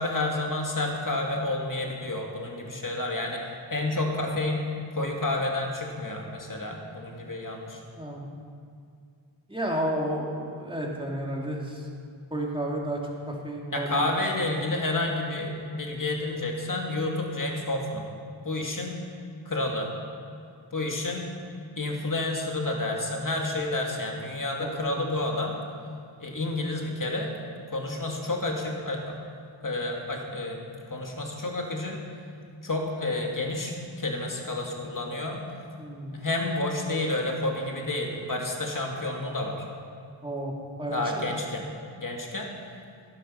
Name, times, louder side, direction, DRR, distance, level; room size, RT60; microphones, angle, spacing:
voice 1, 0.0-3.4 3.7-4.6 4.9-7.8 13.7-18.0 18.4-19.0 19.5-19.9 20.7-21.3 21.8-25.6 26.2-27.3 27.7-29.2 29.6-30.6 30.9-32.0 32.6-35.4 36.1-39.6 40.9-41.7 42.0-42.5, left 2 dB, 45° left, 0 dB, 2.4 m, -30 dB
voice 2, 9.5-11.9 12.3-13.0 13.3-14.1 24.6-25.0 35.8-36.2 40.2-40.5 40.8-41.3, right 1 dB, 10° right, -2 dB, 2.7 m, -32 dB
12.5 x 11.5 x 5.8 m, 2.3 s
wide cardioid pair, 60°, 45 cm